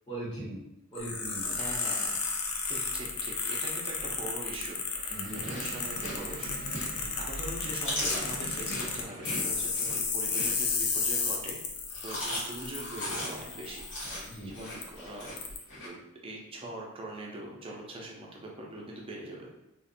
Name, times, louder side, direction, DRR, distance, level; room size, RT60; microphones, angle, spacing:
voice 1, 0.1-0.6 0.9-1.6 5.1-5.4 6.9-7.2 14.2-14.6, right 1 dB, 25° left, -10 dB, 1.0 m, -40 dB
sound 1, 0.9-14.3 14.8-14.9 15.4-15.6, left 5 dB, 75° left, 0.4 m, -33 dB
voice 2, 1.5-2.2 2.7-6.6 7.2-11.6 12.0-13.8 14.5-15.3 15.8-19.5, right 1 dB, 25° right, -2 dB, 0.5 m, -42 dB
sound 2, 4.8-9.9, right 2 dB, 80° right, 0.4 m, -46 dB
Chewing mastication, 5.3-7.1 7.5-11.0 11.8-15.9, left 1 dB, 60° left, 0.9 m, -38 dB
2.5 x 2.1 x 2.6 m, 0.87 s
head